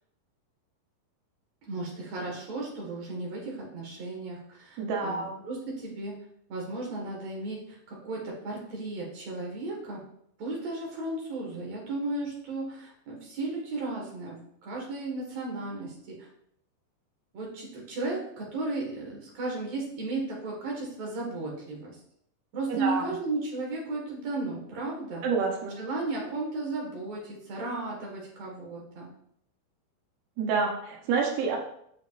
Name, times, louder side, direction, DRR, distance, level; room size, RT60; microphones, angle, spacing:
voice 1, 1.7-6.1 6.5-10.0 10.4-16.3 17.3-22.0 22.5-25.2 25.8-29.1, right 2 dB, 55° right, -3 dB, 2.3 m, -35 dB
voice 2, 4.8-5.4 22.7-23.0 25.2-25.8 30.4-31.6, right 4 dB, 85° right, 0 dB, 3.2 m, -28 dB
6.9 x 6.2 x 2.4 m, 0.70 s
omnidirectional pair, 4.6 m